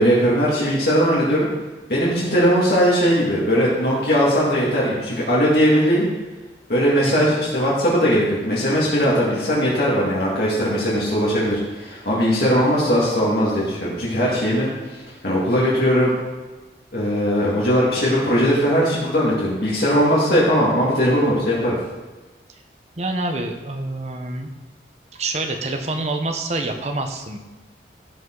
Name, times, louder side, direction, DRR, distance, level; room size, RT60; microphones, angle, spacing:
voice 1, 0.0-1.5 1.9-6.1 6.7-14.7 15.2-16.1 16.9-21.8, equal, 55° left, -7 dB, 2.2 m, -19 dB
voice 2, 7.0-7.3 23.0-24.5 25.1-27.4, right 2 dB, 35° right, 4 dB, 0.9 m, -27 dB
16.0 x 5.6 x 3.9 m, 1.2 s
head